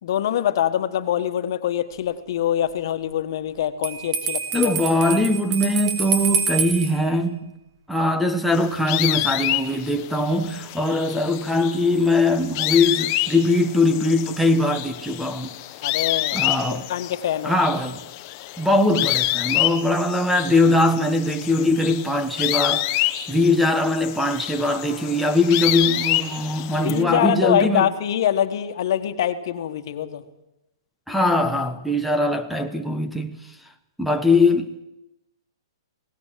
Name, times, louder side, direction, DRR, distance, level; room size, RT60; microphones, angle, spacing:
voice 1, 0.0-4.7 15.8-16.4 16.7-17.6 26.8-30.2, left 10 dB, 55° left, 1.6 m, -24 dB
Bell, 3.8-6.9, right 5 dB, 40° right, 4.2 m, -26 dB
voice 2, 4.5-7.4 7.9-15.5 16.3-16.9 17.4-18.0 18.6-27.9 31.1-33.4 34.0-34.8, left 2 dB, ahead, 1.2 m, -21 dB
sound 1, 8.5-27.0, left 16 dB, 35° left, 1.1 m, -28 dB
26.0 x 18.5 x 7.6 m
hypercardioid pair, 150°, 3 cm